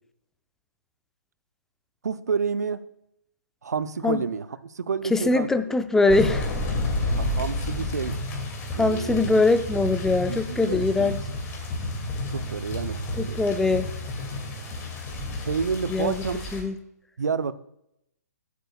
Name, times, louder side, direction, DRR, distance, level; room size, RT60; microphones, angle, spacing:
voice 1, 2.0-2.8 3.6-5.7 7.0-8.2 8.8-9.3 10.2-11.1 12.3-13.4 15.4-16.4 17.2-17.5, right 5 dB, 70° right, 13 dB, 0.7 m, -29 dB
voice 2, 5.1-6.5 8.8-11.2 13.2-13.9 15.9-16.2 16.5-16.8, left 3 dB, 5° left, 11 dB, 0.4 m, -22 dB
sound 1, 6.1-16.6, left 1 dB, 25° left, 2.4 m, -31 dB
16.5 x 8.3 x 2.4 m, 0.78 s
figure-of-eight pair, 130°, 9 cm